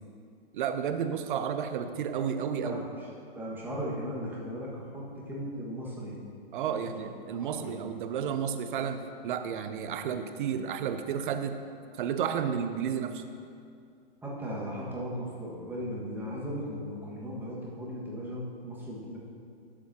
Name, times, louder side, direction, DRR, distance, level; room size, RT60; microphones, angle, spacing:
voice 1, 0.5-2.8 6.5-11.6 12.0-13.2, right 8 dB, 55° right, 9 dB, 0.7 m, -32 dB
voice 2, 2.6-6.2 6.7-7.0 7.3-7.7 14.2-19.2, equal, 5° right, -6 dB, 1.6 m, -37 dB
12.0 x 7.2 x 2.9 m, 2.4 s
hypercardioid pair, 125°, 30 cm